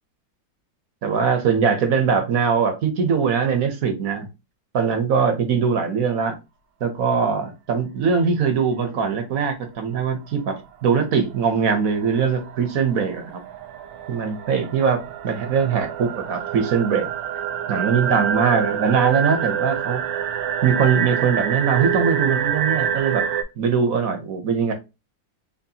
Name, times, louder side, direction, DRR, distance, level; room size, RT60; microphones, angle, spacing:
voice 1, 1.0-4.3 4.7-6.4 6.8-13.4 14.1-15.0 15.2-17.1 17.7-20.0 20.6-23.3 23.6-24.7, right 6 dB, 55° right, 1.1 m, -21 dB
sound 1, 10.6-10.7 11.0-23.4, right 9 dB, 75° right, 1.3 m, -27 dB
4.3 x 3.1 x 2.8 m
omnidirectional pair, 2.1 m